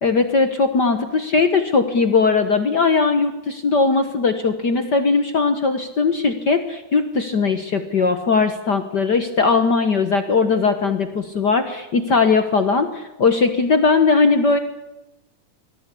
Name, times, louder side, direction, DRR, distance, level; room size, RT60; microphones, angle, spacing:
voice 1, 0.0-14.6, left 4 dB, 50° left, 8 dB, 1.3 m, -19 dB
24.5 x 18.5 x 8.3 m, 0.95 s
omnidirectional pair, 3.4 m